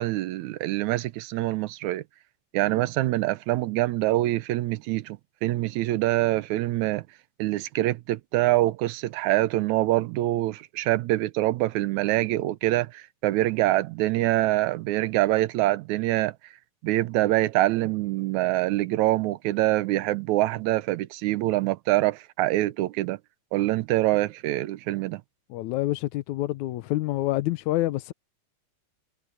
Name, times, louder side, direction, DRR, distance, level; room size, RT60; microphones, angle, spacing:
voice 1, 0.0-2.0 2.5-7.0 7.4-16.4 16.8-23.2 23.5-25.2, right 17 dB, 85° right, 2.0 m, -25 dB
voice 2, 25.5-28.1, left 16 dB, 85° left, 2.1 m, -27 dB
omnidirectional pair, 3.4 m